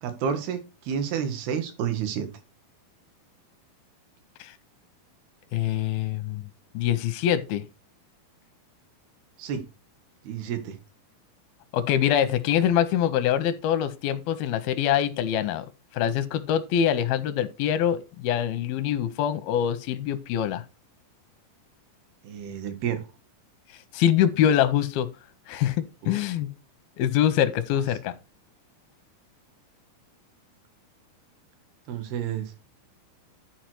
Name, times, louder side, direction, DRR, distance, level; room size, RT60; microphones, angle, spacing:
voice 1, 0.0-2.3 9.4-9.6 10.2-10.8 22.2-23.0 26.2-26.3 31.9-32.5, right 8 dB, 85° right, 3.1 m, -30 dB
voice 2, 5.5-6.5 6.7-7.6 11.7-15.7 15.9-20.6 23.9-25.1 25.5-26.5 27.0-28.1, left 10 dB, 85° left, 2.5 m, -24 dB
10.5 x 4.6 x 4.5 m
omnidirectional pair, 4.3 m